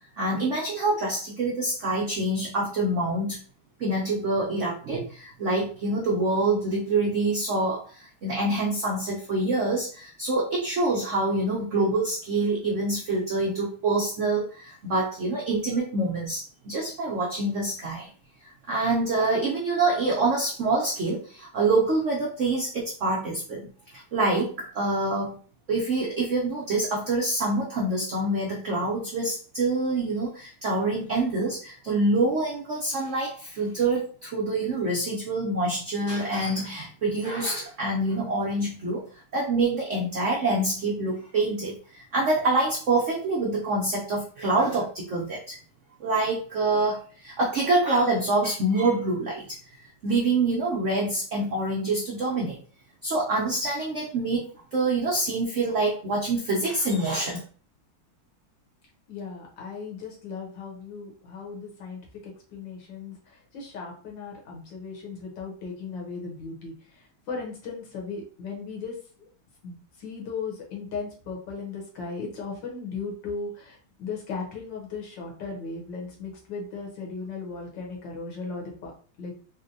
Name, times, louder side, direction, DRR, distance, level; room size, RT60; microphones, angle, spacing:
voice 1, 0.2-3.4 3.8-18.1 18.4-23.7 23.9-25.4 25.7-45.6 46.0-49.6 50.0-52.6 53.0-57.4, right 2 dB, 75° right, -3 dB, 0.7 m, -26 dB
voice 2, 59.1-69.3 69.6-78.9 79.2-79.3, left 4 dB, 70° left, 0 dB, 1.6 m, -37 dB
4.2 x 2.1 x 2.6 m, 0.41 s
omnidirectional pair, 2.1 m